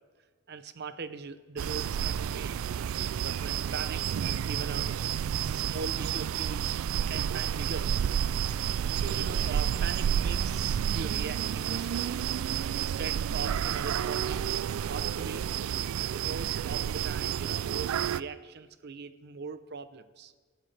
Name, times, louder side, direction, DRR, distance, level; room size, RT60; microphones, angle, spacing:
voice 1, 0.5-2.6 3.2-5.0 5.4-6.8 7.1-7.9 8.6-12.2 12.7-14.5 14.9-15.5 16.1-20.3, right 5 dB, 55° right, 12 dB, 0.7 m, -40 dB
sound 1, 1.6-18.2, right 9 dB, 80° right, 0.3 m, -30 dB
18.0 x 14.0 x 3.3 m, 1.4 s
head